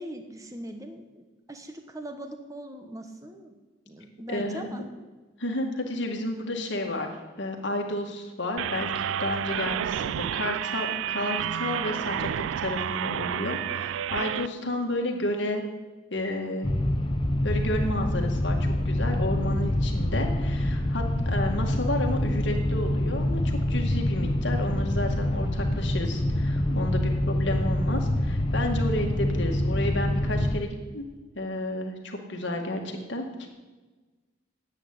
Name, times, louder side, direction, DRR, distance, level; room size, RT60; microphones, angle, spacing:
voice 1, 0.0-3.5 3.9-4.8 26.6-26.9, right 1 dB, 15° right, 5 dB, 1.1 m, -40 dB
voice 2, 4.3-4.6 5.4-7.1 7.4-12.3 12.6-15.6 16.1-16.7 17.4-31.1 31.4-33.5, left 1 dB, 65° left, 2 dB, 2.1 m, -31 dB
sound 1, 8.6-14.5, right 9 dB, 75° right, 0.3 m, -30 dB
sound 2, 16.6-30.6, left 1 dB, 25° left, 0.8 m, -26 dB
9.8 x 8.4 x 9.8 m, 1.3 s
head